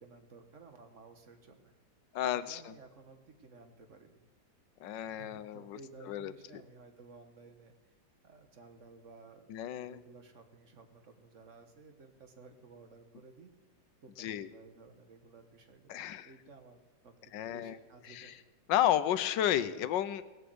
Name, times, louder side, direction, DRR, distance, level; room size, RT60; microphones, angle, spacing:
voice 1, 0.0-1.7 2.5-4.2 5.0-8.0 8.2-13.5 14.0-17.1 17.5-18.4, right 4 dB, 45° right, 7 dB, 1.6 m, -55 dB
voice 2, 2.1-2.7 4.8-5.8 6.1-6.3 9.5-10.0 14.2-14.5 15.9-16.3 17.3-17.8 18.1-18.3 18.7-20.2, left 11 dB, 90° left, 14 dB, 1.4 m, -32 dB
18.5 x 8.2 x 7.8 m, 1.2 s
omnidirectional pair, 1.9 m